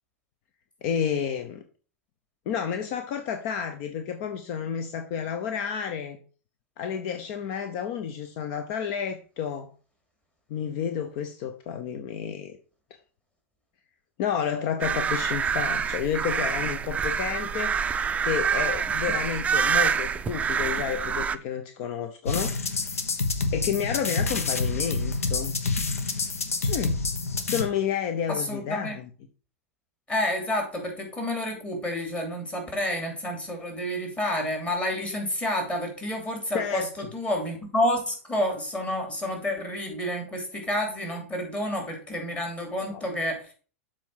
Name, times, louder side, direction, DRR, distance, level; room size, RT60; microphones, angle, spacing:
voice 1, 0.8-1.6 2.5-6.2 6.8-9.7 10.5-12.6 14.2-17.7 18.2-22.5 23.5-25.5 26.6-27.0 27.4-29.0 36.5-36.9 42.9-43.1, left 8 dB, 50° left, 7 dB, 0.8 m, -30 dB
sound 1, 14.8-21.4, right 7 dB, 15° right, 0.5 m, -26 dB
sound 2, 22.2-27.6, left 3 dB, 80° left, 1.1 m, -27 dB
voice 2, 28.3-29.0 30.1-43.5, left 1 dB, 15° left, 2 dB, 3.0 m, -29 dB
7.3 x 4.5 x 5.6 m, 0.39 s
figure-of-eight pair, 95°, 8 cm